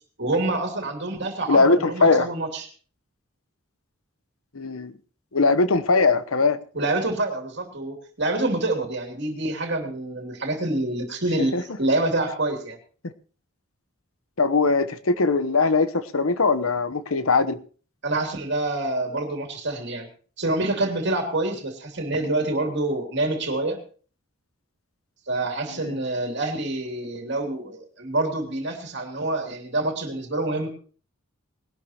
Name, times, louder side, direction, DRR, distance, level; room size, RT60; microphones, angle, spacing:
voice 1, 0.2-2.7 6.7-12.8 18.0-20.1 20.4-23.8 25.3-30.7, right 2 dB, 55° right, 2.9 m, -27 dB
voice 2, 1.5-2.3 4.5-4.9 5.3-6.6 11.5-11.6 14.4-17.6 25.8-26.0, left 3 dB, 75° left, 1.0 m, -20 dB
20.0 x 12.0 x 2.9 m
head